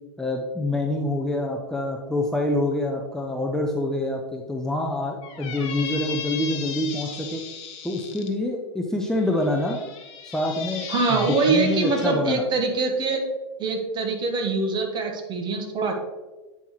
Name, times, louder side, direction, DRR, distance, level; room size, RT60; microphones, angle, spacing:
voice 1, 0.2-7.4 7.8-9.8 10.2-12.4, left 1 dB, 5° left, -1 dB, 0.7 m, -26 dB
Squeak, 5.2-8.3 9.1-12.2, left 7 dB, 40° left, 1.2 m, -36 dB
voice 2, 10.9-13.2 13.6-15.9, right 3 dB, 30° right, 3 dB, 1.4 m, -24 dB
8.7 x 5.4 x 3.1 m, 1.2 s
hypercardioid pair, 105°, 15 cm